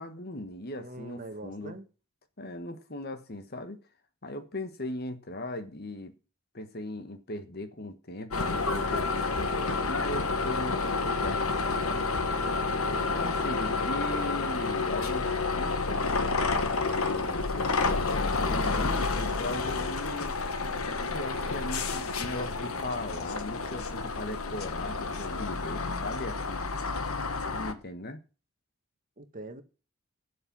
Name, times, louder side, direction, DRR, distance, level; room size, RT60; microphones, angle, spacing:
voice 1, 0.0-1.7 2.4-3.8 4.2-6.1 6.5-12.1 13.1-16.1 16.8-20.4 21.1-26.7 27.5-28.2, left 1 dB, 45° left, 1.3 m, -38 dB
voice 2, 0.8-1.9 12.8-13.1 29.2-29.6, right 2 dB, 40° right, 1.4 m, -43 dB
sound 1, 8.3-27.7, left 3 dB, 80° left, 1.3 m, -30 dB
12.0 x 6.6 x 7.4 m
head